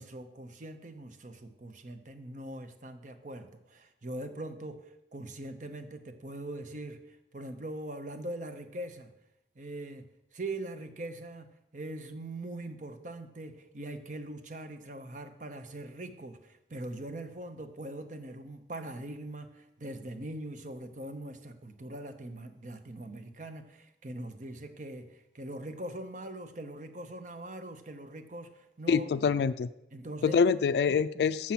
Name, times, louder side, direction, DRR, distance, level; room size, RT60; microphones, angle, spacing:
voice 1, 0.0-9.1 9.6-10.0 10.3-29.1 29.9-30.4 30.9-31.3, right 1 dB, 45° right, 8 dB, 0.7 m, -42 dB
voice 2, 28.9-29.7 30.2-31.5, left 5 dB, 65° left, 12 dB, 0.3 m, -25 dB
7.4 x 7.1 x 5.8 m, 0.86 s
head